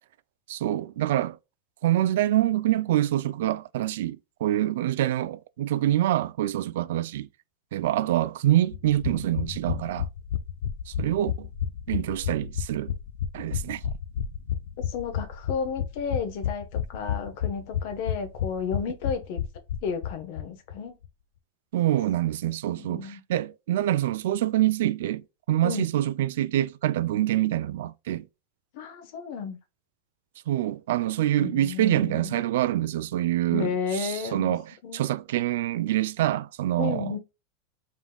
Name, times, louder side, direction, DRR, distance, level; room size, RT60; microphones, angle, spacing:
voice 1, 0.5-1.4 1.8-7.3 7.7-10.1 10.9-11.5 11.9-12.9 13.3-13.8 21.7-28.2 30.5-34.6 34.9-37.2, right 13 dB, 75° right, 0.3 m, -26 dB
sound 1, 8.7-20.4 20.7-20.8 21.0-21.1, left 9 dB, 85° left, 0.5 m, -31 dB
voice 2, 14.9-19.4 19.8-21.0 22.8-23.2 25.6-25.9 28.7-29.6 31.4-32.4 33.5-34.6 34.8-35.0 36.8-37.2, left 6 dB, 55° left, 1.0 m, -32 dB
5.3 x 3.6 x 2.2 m
supercardioid pair, 165°, 0 cm